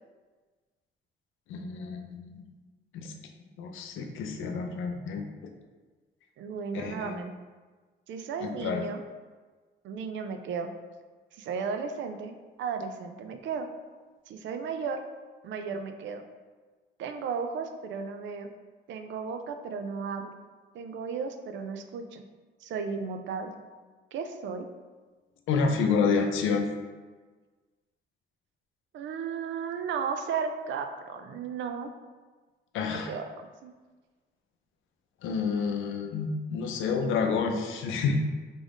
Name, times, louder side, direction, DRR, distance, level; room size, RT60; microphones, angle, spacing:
voice 1, 1.5-2.5 2.9-3.1 3.6-5.3 6.7-7.1 8.4-8.8 25.5-26.6 32.7-33.1 35.2-38.2, left 5 dB, 80° left, 4 dB, 0.5 m, -29 dB
voice 2, 6.4-7.3 8.1-9.0 9.8-10.7 11.4-13.7 14.3-15.0 15.4-16.2 17.0-18.5 18.9-20.3 20.7-22.2 22.6-23.5 24.1-24.7 28.9-31.9 32.9-33.7, right 5 dB, 70° right, 7 dB, 0.4 m, -34 dB
3.8 x 2.5 x 3.4 m, 1.4 s
cardioid pair, 90°, 20 cm